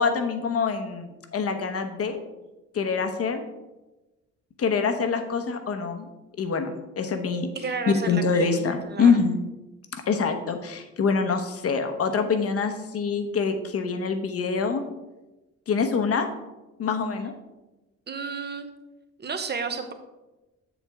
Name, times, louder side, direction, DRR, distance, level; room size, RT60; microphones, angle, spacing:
voice 1, 0.0-2.2 2.7-3.4 4.6-6.0 6.4-7.5 7.9-9.4 9.9-14.8 15.7-16.3 16.8-17.3, left 5 dB, 50° left, 7 dB, 1.0 m, -25 dB
voice 2, 7.5-9.1 18.1-18.7 19.2-19.9, right 5 dB, 35° right, 7 dB, 1.0 m, -32 dB
7.3 x 7.2 x 3.6 m, 1.1 s
cardioid pair, 90°, 30 cm